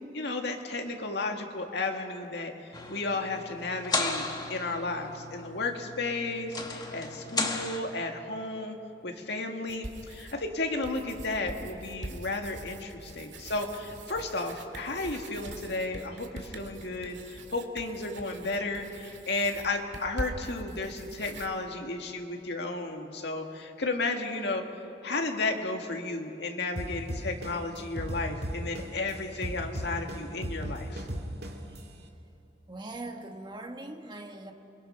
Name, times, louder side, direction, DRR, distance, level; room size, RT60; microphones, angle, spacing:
voice 1, 0.1-4.2 4.5-8.8 9.0-24.6 25.0-31.1, left 3 dB, 70° left, 3 dB, 2.1 m, -33 dB
sound 1, 2.7-7.8, left 3 dB, 25° left, 1.6 m, -35 dB
sound 2, 9.7-10.5 10.8-21.5, right 2 dB, 80° right, 2.1 m, -43 dB
sound 3, 26.8-29.1 29.4-31.8, equal, 60° right, 2.4 m, -35 dB
voice 2, 32.7-34.5, right 2 dB, 25° right, 4 dB, 1.6 m, -41 dB
29.0 x 22.0 x 5.7 m, 2.8 s
head